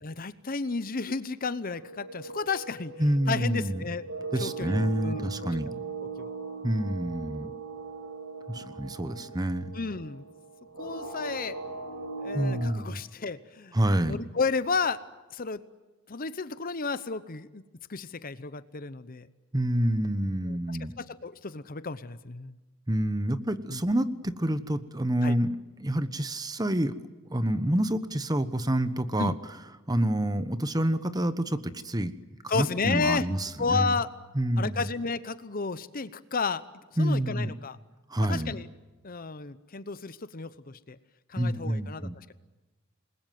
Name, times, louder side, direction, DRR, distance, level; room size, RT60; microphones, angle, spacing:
voice 1, 0.0-2.9 3.3-4.1 4.4-5.8 6.2-6.3 7.4-7.5 9.7-10.2 10.8-11.6 12.2-13.8 14.0-15.0 15.3-15.6 16.1-17.6 17.9-19.3 20.4-22.6 23.7-23.8 25.2-25.4 29.2-29.3 32.5-33.3 33.6-34.1 34.6-36.6 37.0-37.8 38.2-38.7 39.0-41.0 41.3-42.3, left 4 dB, 40° left, 14 dB, 0.9 m, -32 dB
sound 1, 1.7-12.6, right 4 dB, 85° right, 7.6 m, -39 dB
voice 2, 3.0-3.8 4.3-5.7 6.6-7.5 8.5-9.7 12.3-13.0 13.7-14.2 19.5-20.9 22.9-26.9 27.3-29.3 29.9-32.1 32.5-33.9 34.3-34.8 37.0-37.6 38.1-38.6 41.4-42.3, right 1 dB, 20° right, 12 dB, 1.1 m, -28 dB
28.0 x 21.5 x 9.3 m, 1.2 s
head